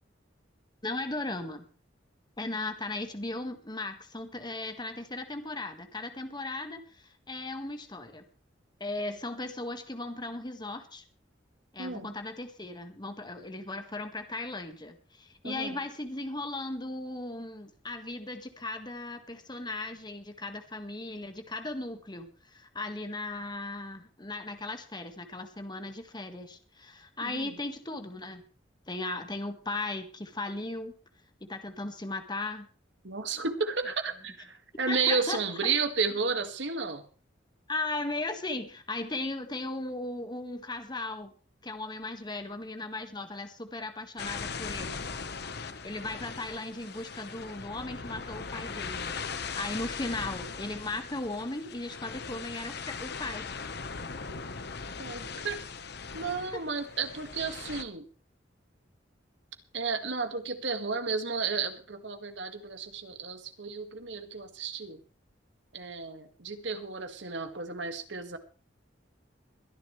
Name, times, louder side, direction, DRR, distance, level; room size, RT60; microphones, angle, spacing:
voice 1, 0.8-1.7 2.4-8.2 8.8-11.0 11.7-28.4 28.9-30.9 31.4-32.7 34.9-35.7 37.7-41.3 41.6-45.0 45.8-53.5 56.5-56.6, left 2 dB, 25° left, 7 dB, 1.7 m, -37 dB
voice 2, 11.8-12.1 15.4-15.8 27.2-27.5 33.0-37.0 54.3-54.4 55.0-55.6 56.1-58.1 59.7-65.0 65.7-68.4, right 4 dB, 70° right, 7 dB, 1.9 m, -32 dB
sound 1, 44.2-57.8, left 5 dB, 60° left, 1.2 m, -39 dB
22.5 x 11.0 x 3.3 m, 0.39 s
head